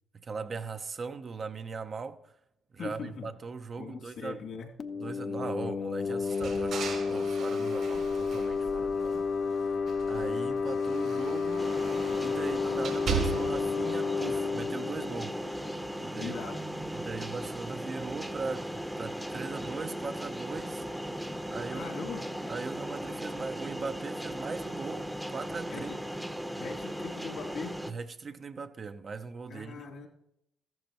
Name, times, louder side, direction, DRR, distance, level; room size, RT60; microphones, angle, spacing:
voice 1, 0.1-2.3 2.7-4.4 5.0-9.3 9.5-9.8 10.1-11.8 12.2-15.4 16.0-16.4 16.9-21.2 21.5-21.9 22.5-25.9 27.9-29.8, right 4 dB, 45° right, 0.7 m, -39 dB
voice 2, 2.8-3.3 3.8-4.7 16.1-16.6 21.7-22.2 25.7-26.0 26.6-27.8 29.5-30.1, left 5 dB, 75° left, 2.5 m, -40 dB
sound 1, 4.8-16.2, left 5 dB, 50° left, 0.7 m, -31 dB
sound 2, 6.3-9.4 9.8-13.8, right 7 dB, 70° right, 3.2 m, -38 dB
sound 3, 11.6-27.9, equal, 5° right, 0.8 m, -37 dB
14.0 x 12.0 x 3.0 m
supercardioid pair, 75°, 0 cm